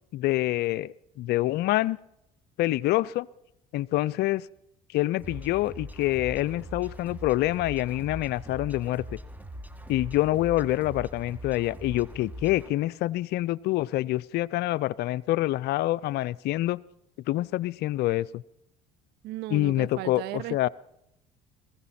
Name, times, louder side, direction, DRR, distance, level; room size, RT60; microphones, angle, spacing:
voice 1, 0.1-2.0 2.6-3.3 3.7-4.5 4.9-9.2 9.9-16.8 17.3-18.4 19.5-20.7, left 16 dB, 60° left, 0.5 m, -26 dB
sound 1, 5.2-12.7, equal, 10° right, 1.5 m, -41 dB
voice 2, 19.2-20.7, right 17 dB, 65° right, 0.5 m, -36 dB
21.5 x 15.5 x 4.3 m
hypercardioid pair, 65°, 19 cm